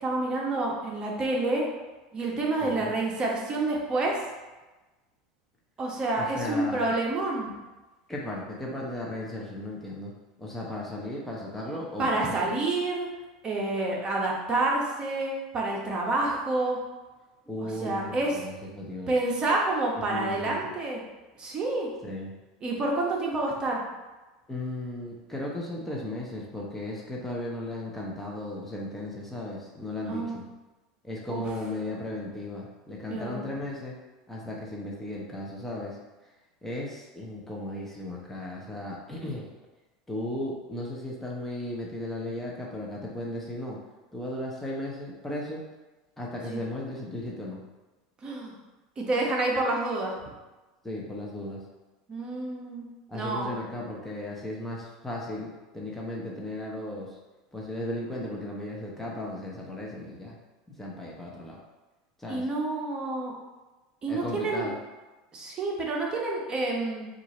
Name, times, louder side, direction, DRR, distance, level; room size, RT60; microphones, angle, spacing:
voice 1, 0.0-1.6 2.1-4.2 5.8-7.5 12.0-13.1 13.4-16.8 17.6-18.3 19.1-21.0 21.4-21.9 22.6-23.8 30.1-30.3 31.3-31.4 33.1-33.4 46.5-46.6 48.2-48.5 49.0-50.1 52.1-52.9 53.1-53.6 62.3-63.3 64.0-64.7 65.3-67.1, right 2 dB, 30° right, -2 dB, 1.0 m, -28 dB
voice 2, 2.6-2.9 6.1-6.9 8.1-10.1 10.4-12.4 17.5-19.1 20.0-20.6 22.0-22.3 24.5-30.5 31.0-33.9 34.3-36.0 36.6-39.5 40.1-43.8 44.1-45.6 46.2-47.6 50.8-51.6 53.1-57.2 57.5-60.4 60.7-61.6 62.2-62.5 64.1-64.8, left 1 dB, 10° left, -3 dB, 0.8 m, -36 dB
4.4 x 2.5 x 4.1 m, 1.1 s
supercardioid pair, 105°, 3 cm